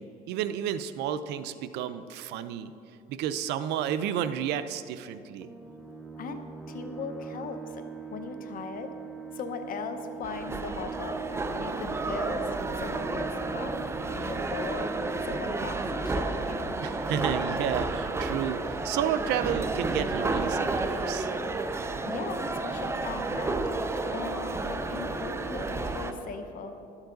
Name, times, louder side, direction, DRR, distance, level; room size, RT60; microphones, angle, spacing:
voice 1, 0.0-2.7 3.1-5.5 16.8-21.3, right 9 dB, 85° right, 12 dB, 0.5 m, -31 dB
sound 1, 5.4-16.7, right 6 dB, 5° left, 1.0 m, -43 dB
voice 2, 6.2-7.9 8.1-8.9 9.3-11.3 11.5-12.5 12.8-13.7 14.1-15.0 15.2-16.7 21.7-23.6 24.1-26.8, left 5 dB, 55° left, 7 dB, 0.8 m, -39 dB
sound 2, 10.2-26.1, right 3 dB, 15° right, 0.5 m, -31 dB
12.0 x 7.2 x 3.9 m, 2.8 s
cardioid pair, 110°, 17 cm